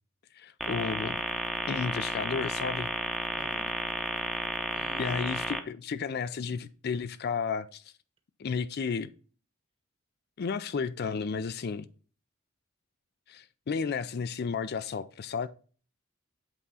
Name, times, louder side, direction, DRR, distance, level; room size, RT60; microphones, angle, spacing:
voice 1, 0.3-1.2 1.7-2.9 5.0-7.9 8.4-9.1 10.4-11.9 13.3-15.5, left 5 dB, 50° left, 0.4 m, -33 dB
sound 1, 0.6-5.6, equal, ahead, 0.7 m, -32 dB
voice 2, 3.4-3.7 4.7-5.2, right 2 dB, 25° right, 1.1 m, -47 dB
8.1 x 3.7 x 5.5 m
head